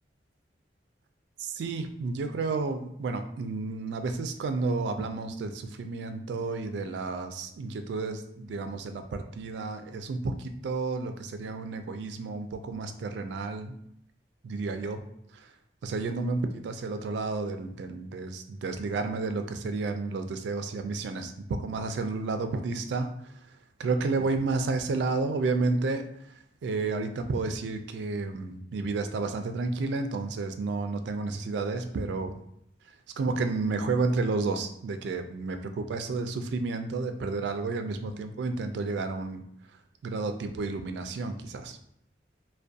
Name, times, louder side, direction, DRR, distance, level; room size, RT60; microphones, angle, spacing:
voice 1, 1.4-13.8 14.4-15.0 15.3-15.5 15.8-23.3 23.8-26.3 26.6-32.4 33.2-39.4 40.0-41.8, right 3 dB, 75° right, 8 dB, 0.3 m, -31 dB
2.4 x 2.1 x 2.5 m, 0.75 s
head